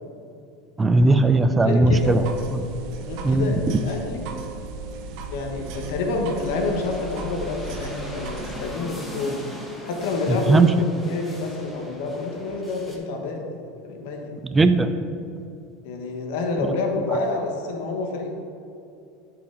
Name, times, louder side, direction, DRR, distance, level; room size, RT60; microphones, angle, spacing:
voice 1, 0.8-2.2 2.5-2.6 3.2-3.8 10.3-10.7 14.4-14.9 16.6-16.7 17.1-17.2, right 2 dB, 15° right, 10 dB, 0.5 m, -18 dB
voice 2, 1.6-2.2 3.0-4.3 5.3-9.4 9.8-14.3 15.8-18.4, left 3 dB, 70° left, 2 dB, 1.2 m, -28 dB
sound 1, 1.9-8.6, right 3 dB, 60° right, 0.8 m, -36 dB
sound 2, 5.1-13.0, left 1 dB, 5° left, 1.3 m, -41 dB
10.5 x 4.9 x 3.9 m, 2.6 s
supercardioid pair, 125°, 0 cm